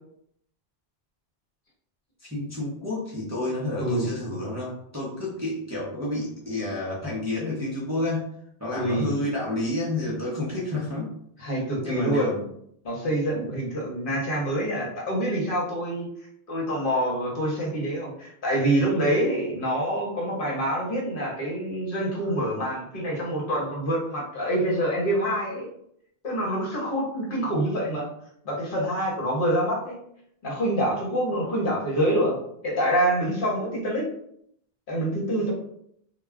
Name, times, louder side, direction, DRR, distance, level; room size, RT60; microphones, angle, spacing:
voice 1, 2.2-8.3 8.6-11.1 11.8-12.4, left 2 dB, 20° right, -6 dB, 0.5 m, -30 dB
voice 2, 8.7-9.2 11.4-12.4 12.8-16.1 16.5-25.7 26.2-28.1 28.4-30.0 30.4-32.3 32.6-34.0 34.9-35.5, right 1 dB, 60° left, -3 dB, 1.0 m, -26 dB
2.2 x 2.1 x 3.4 m, 0.70 s
omnidirectional pair, 1.0 m